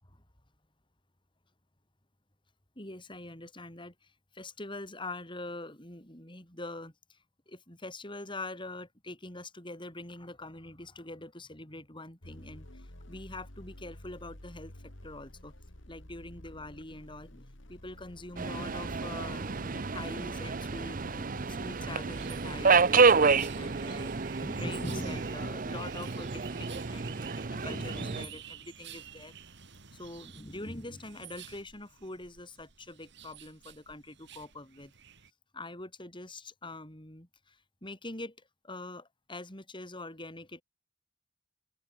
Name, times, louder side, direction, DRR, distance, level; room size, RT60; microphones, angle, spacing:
voice 1, 2.8-7.2 7.5-14.7 15.0-15.5 15.9-29.3 29.9-34.9 35.5-38.4 38.6-40.6, left 2 dB, 25° left, 5.4 m, -44 dB
sound 1, 12.2-18.9, left 1 dB, 65° left, 3.4 m, -50 dB
Subway metro underground, 18.4-28.3, right 4 dB, 45° right, 0.8 m, -29 dB
sound 2, 22.1-35.3, right 9 dB, 60° right, 3.4 m, -50 dB
open air
head